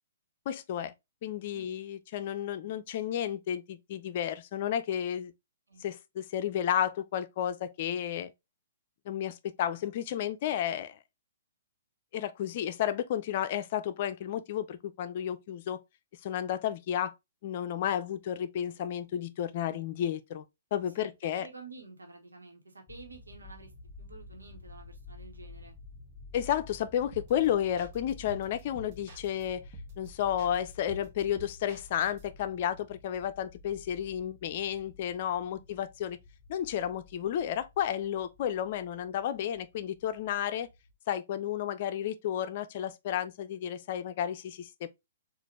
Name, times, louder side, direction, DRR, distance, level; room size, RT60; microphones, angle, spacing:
voice 1, 0.5-0.9 1.2-5.3 5.8-8.3 9.1-11.0 12.1-15.8 16.2-17.1 17.4-20.4 20.7-21.5 26.3-29.7 30.0-36.2 36.5-40.7 41.1-44.9, left 10 dB, 45° left, 0.5 m, -32 dB
voice 2, 21.0-23.7 24.0-25.7 35.3-35.6, right 3 dB, 85° right, 1.2 m, -50 dB
sound 1, 22.9-40.9, left 3 dB, 10° left, 1.1 m, -51 dB
sound 2, 27.1-27.5 27.8-29.4 29.7-30.1 30.4-32.2, right 1 dB, 40° right, 1.2 m, -47 dB
4.0 x 2.5 x 3.1 m
figure-of-eight pair, 120°, 0 cm